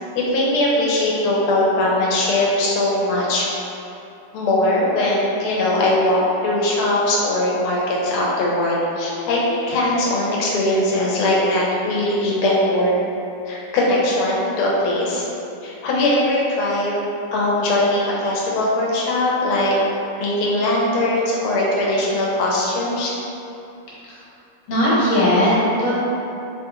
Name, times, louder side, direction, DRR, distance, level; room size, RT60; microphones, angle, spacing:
voice 1, 0.1-3.5 4.3-13.0 13.4-15.3 15.6-16.9 17.3-19.8 20.2-23.1, left 1 dB, 90° left, -4 dB, 1.6 m, -20 dB
voice 2, 24.7-25.9, left 1 dB, 65° left, -8 dB, 1.5 m, -18 dB
4.1 x 2.3 x 2.8 m, 2.8 s
omnidirectional pair, 2.3 m